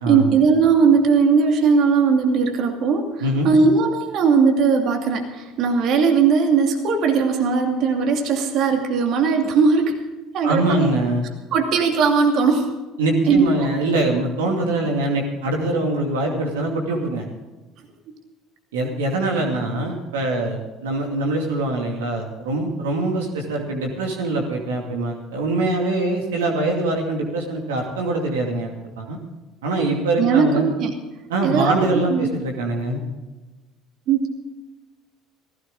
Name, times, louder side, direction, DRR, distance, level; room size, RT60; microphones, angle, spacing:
voice 1, 0.1-3.1 3.4-10.1 10.3-10.9 11.5-12.7 13.3-14.0 30.2-30.9 31.4-32.3 34.1-34.3, right 5 dB, 60° right, 4 dB, 2.6 m, -18 dB
voice 2, 10.4-11.2 13.0-17.3 18.7-29.2 29.6-30.7 31.3-33.0, right 2 dB, 85° right, 1 dB, 2.5 m, -23 dB
17.0 x 16.0 x 3.8 m, 1.1 s
hypercardioid pair, 65°, 0 cm